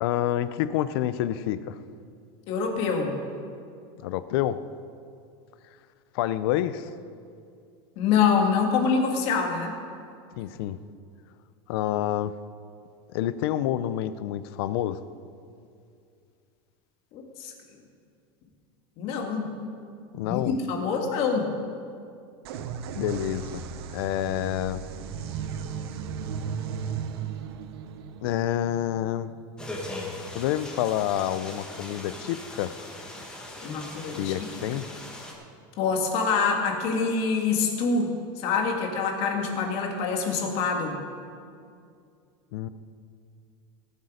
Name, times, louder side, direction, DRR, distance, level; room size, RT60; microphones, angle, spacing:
voice 1, 0.0-1.8 4.0-4.6 6.1-6.9 10.4-10.8 11.7-12.3 13.1-15.0 20.1-20.5 22.9-23.6 23.9-24.8 28.2-29.3 30.3-32.7 34.2-34.9 42.5-42.7, left 12 dB, 70° left, 14 dB, 0.6 m, -28 dB
voice 2, 2.5-3.1 8.0-9.7 17.1-17.5 19.0-19.5 20.2-21.5 33.6-34.3 35.8-40.9, left 5 dB, 50° left, 2 dB, 2.1 m, -25 dB
sound 1, 22.4-30.0, right 7 dB, 85° right, 0.9 m, -36 dB
sound 2, 29.6-35.3, left 1 dB, 5° left, 1.7 m, -40 dB
18.0 x 8.2 x 5.1 m, 2.4 s
supercardioid pair, 155°, 13 cm